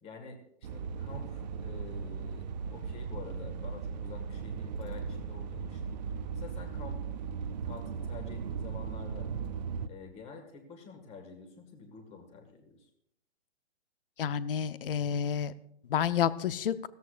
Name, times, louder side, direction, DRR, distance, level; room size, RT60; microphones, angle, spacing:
voice 1, 0.0-5.9 6.3-7.0 7.7-9.3 9.9-12.9, left 5 dB, 15° left, 5 dB, 1.9 m, -48 dB
sound 1, 0.6-9.9, right 6 dB, 35° right, 0.7 m, -37 dB
voice 2, 14.2-15.5 15.9-16.7, left 8 dB, 50° left, 15 dB, 0.7 m, -29 dB
17.5 x 13.5 x 2.5 m, 0.76 s
hypercardioid pair, 140°, 36 cm